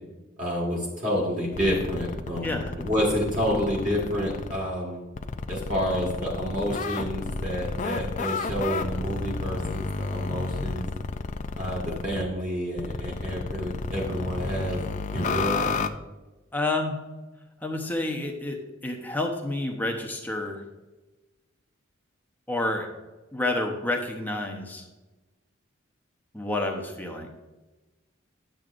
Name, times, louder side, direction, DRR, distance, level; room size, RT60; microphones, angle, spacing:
voice 1, 0.4-5.0 5.5-10.9 11.6-14.8 15.1-15.7, equal, 35° right, -4 dB, 1.7 m, -29 dB
sound 1, 1.5-4.6 5.2-12.2 12.8-15.9, left 4 dB, 35° left, 0.4 m, -31 dB
voice 2, 2.4-2.7 16.5-17.0 17.6-18.6 18.8-20.6 22.5-22.9 23.3-24.8 26.3-27.3, left 2 dB, 10° left, 2 dB, 0.8 m, -29 dB
10.5 x 7.3 x 2.5 m, 1.1 s
head